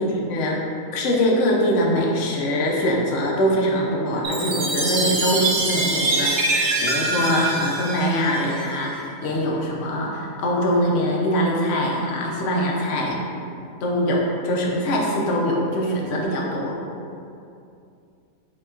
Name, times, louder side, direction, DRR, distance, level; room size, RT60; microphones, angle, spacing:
voice 1, 0.2-0.6 0.9-13.1 13.8-16.7, equal, 60° left, -2 dB, 0.8 m, -23 dB
Chime, 4.2-8.8, right 2 dB, 85° right, 1.1 m, -24 dB
5.2 x 2.9 x 2.4 m, 2.6 s
omnidirectional pair, 1.5 m